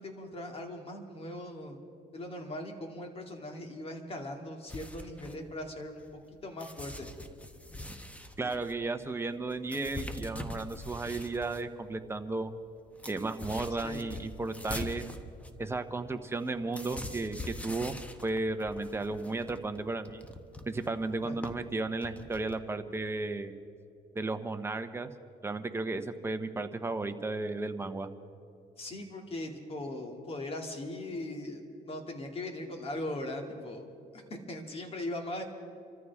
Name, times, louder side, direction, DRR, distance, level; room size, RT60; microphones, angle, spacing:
voice 1, 0.0-1.8 2.1-6.0 6.4-7.1 13.8-14.0 21.2-21.4 28.8-33.9 34.1-35.4, left 1 dB, 35° left, 2 dB, 2.7 m, -39 dB
sound 1, 4.7-6.2 6.6-11.6 12.1-12.2 12.4-22.5, left 1 dB, 10° left, 1.1 m, -43 dB
voice 2, 8.4-12.5 13.1-15.0 15.6-17.9 18.2-20.2 20.7-23.5 24.1-25.1 25.4-28.1, right 3 dB, 15° right, 7 dB, 1.0 m, -34 dB
27.5 x 14.0 x 3.6 m, 2.6 s
cardioid pair, 110°, 17 cm